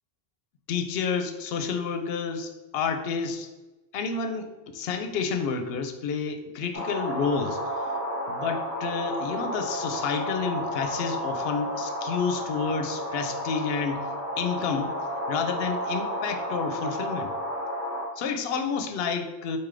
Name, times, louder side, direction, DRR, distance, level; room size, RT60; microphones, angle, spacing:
voice 1, 0.7-3.5 3.9-7.6 8.3-14.1 14.4-14.9 15.3-17.3 18.2-19.6, left 5 dB, 75° left, 7 dB, 0.8 m, -30 dB
sound 1, 6.7-18.1, equal, 15° right, 1.0 m, -32 dB
4.2 x 3.6 x 3.2 m, 1.1 s
omnidirectional pair, 1.0 m